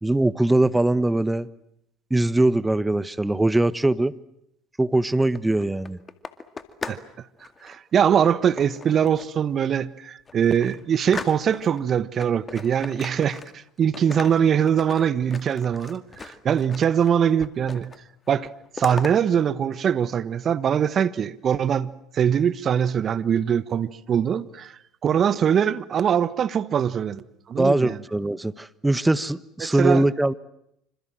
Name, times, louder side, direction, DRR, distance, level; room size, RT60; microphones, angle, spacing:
voice 1, 0.0-1.5 2.1-4.1 4.8-6.0 27.6-30.3, right 2 dB, 10° right, 1.1 m, -21 dB
sound 1, 5.1-7.1 7.4-7.8 8.6-9.4 9.8-9.9 10.3-11.8 12.2-13.7 13.9-17.1 17.4-18.0 18.3-19.1, left 4 dB, 25° left, 2.2 m, -38 dB
voice 2, 7.6-17.9 18.3-18.5 18.7-28.0 29.6-30.0, right 8 dB, 45° right, 1.2 m, -22 dB
27.0 x 26.0 x 7.7 m
hypercardioid pair, 75°, 0 cm